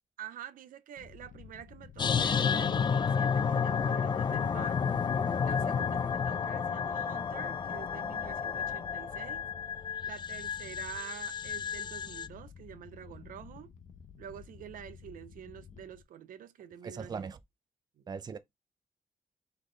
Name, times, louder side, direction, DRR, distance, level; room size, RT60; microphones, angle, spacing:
voice 1, 0.2-4.8 5.4-9.5 10.1-13.7 14.2-17.3 18.0-18.1, right 10 dB, 80° right, 0.5 m, -47 dB
sound 1, 1.0-16.0, left 7 dB, 60° left, 0.8 m, -52 dB
sound 2, 2.0-12.3, left 6 dB, 35° left, 0.3 m, -31 dB
voice 2, 16.8-17.4 18.1-18.4, right 5 dB, 30° right, 0.4 m, -39 dB
4.0 x 3.3 x 3.8 m
wide cardioid pair, 130°, 14 cm